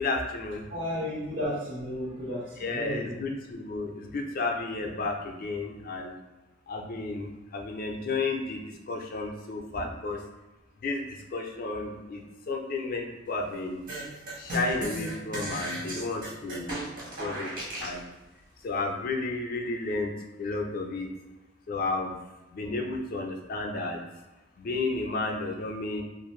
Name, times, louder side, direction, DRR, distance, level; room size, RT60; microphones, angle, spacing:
voice 1, 0.0-0.7 2.6-6.1 6.7-10.2 10.8-13.8 14.3-16.8 17.2-17.5 17.8-18.0 18.6-20.1 20.4-21.1 21.7-22.2 22.5-24.0 24.6-26.0, left 3 dB, 50° left, 2 dB, 0.4 m, -32 dB
voice 2, 0.7-3.2, equal, 80° right, -7 dB, 1.4 m, -33 dB
sound 1, 13.9-18.0, right 1 dB, 45° right, 0.9 m, -35 dB
2.4 x 2.4 x 3.0 m, 1.1 s
head